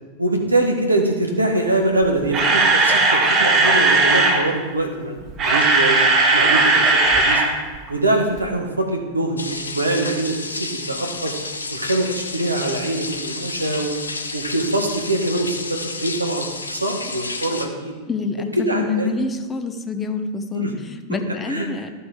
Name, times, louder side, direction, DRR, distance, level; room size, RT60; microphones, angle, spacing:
voice 1, 0.2-6.0 6.3-7.5 7.9-11.4 11.7-13.9 14.3-17.9 18.6-19.1 20.5-20.7 21.1-21.2 21.5-21.7, right 2 dB, 85° right, 2 dB, 1.7 m, -23 dB
Camera, 2.0-4.4 5.2-7.5 7.7-7.9 8.4-8.5, right 3 dB, 30° right, 2.1 m, -16 dB
sound 1, 9.4-17.7, left 3 dB, 75° left, 0.9 m, -31 dB
voice 2, 18.1-21.9, left 3 dB, 20° left, 7 dB, 1.0 m, -27 dB
13.0 x 8.0 x 5.0 m, 1.4 s
figure-of-eight pair, 90°, 0 cm